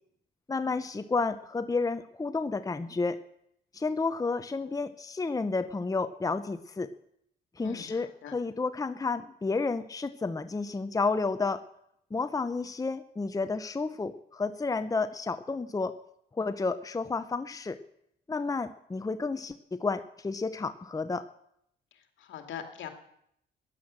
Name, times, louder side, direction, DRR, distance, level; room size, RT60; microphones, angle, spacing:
voice 1, 0.5-3.2 3.7-6.9 7.6-11.6 12.1-15.9 16.3-17.8 18.3-21.3, left 4 dB, 15° left, 11 dB, 0.8 m, -31 dB
voice 2, 7.6-8.3 22.3-22.9, left 9 dB, 75° left, 5 dB, 2.4 m, -41 dB
15.0 x 10.5 x 7.7 m, 0.73 s
cardioid pair, 90°, 20 cm